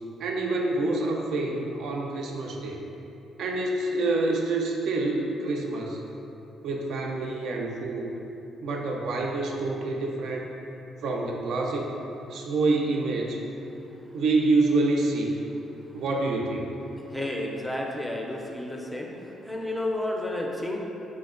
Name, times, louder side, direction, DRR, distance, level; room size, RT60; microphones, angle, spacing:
voice 1, 0.2-2.8 3.4-6.0 6.6-8.1 8.6-10.5 11.0-11.9 12.3-13.4 14.1-15.4 15.9-16.7, right 2 dB, 75° right, 0 dB, 0.3 m, -27 dB
voice 2, 17.1-19.1 19.4-20.8, left 1 dB, 5° left, -1 dB, 0.4 m, -31 dB
4.4 x 2.1 x 2.4 m, 3.0 s
cardioid pair, 90°, 0 cm